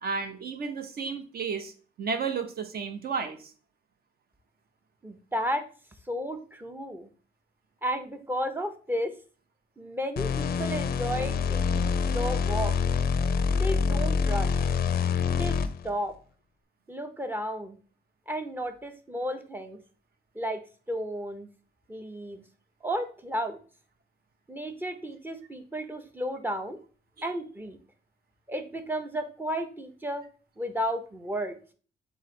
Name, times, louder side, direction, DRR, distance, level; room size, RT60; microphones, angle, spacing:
voice 1, 0.0-1.7 2.0-3.5 27.2-27.3, right 5 dB, 50° right, 8 dB, 0.7 m, -32 dB
voice 2, 5.0-5.6 6.1-7.1 7.8-9.1 9.8-12.8 13.6-14.6 15.3-15.6 15.8-16.1 16.9-17.8 18.3-19.8 20.3-20.6 20.9-21.5 21.9-22.4 22.8-23.6 24.5-26.8 27.2-27.8 28.5-30.2 30.6-31.6, equal, 10° right, 7 dB, 0.6 m, -33 dB
sound 1, 10.2-15.9, left 6 dB, 50° left, 0.4 m, -26 dB
3.8 x 3.0 x 4.2 m, 0.40 s
cardioid pair, 105°, 20 cm